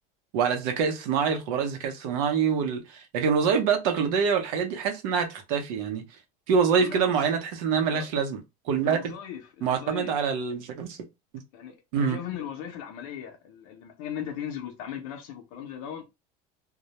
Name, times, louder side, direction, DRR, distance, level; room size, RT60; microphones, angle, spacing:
voice 1, 0.3-6.0 6.5-8.4 8.7-9.1 9.6-11.0 11.9-12.2, right 6 dB, 80° right, 0.7 m, -25 dB
voice 2, 6.8-7.3 7.9-8.1 8.8-10.2 11.5-16.0, left 9 dB, 75° left, 0.6 m, -38 dB
2.2 x 2.0 x 2.8 m
cardioid pair, 165°, 18 cm